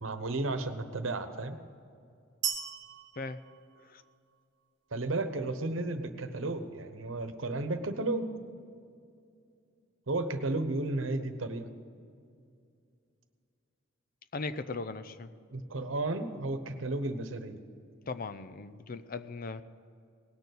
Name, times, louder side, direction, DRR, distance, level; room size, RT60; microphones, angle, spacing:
voice 1, 0.0-1.6 4.9-8.3 10.1-11.7 15.5-17.6, right 2 dB, 85° right, 9 dB, 1.0 m, -33 dB
sound 1, 2.4-4.4, right 8 dB, 65° right, 1.0 m, -37 dB
voice 2, 14.3-15.3 18.1-19.6, left 3 dB, 45° left, 11 dB, 0.5 m, -38 dB
18.5 x 6.8 x 8.0 m, 2.4 s
head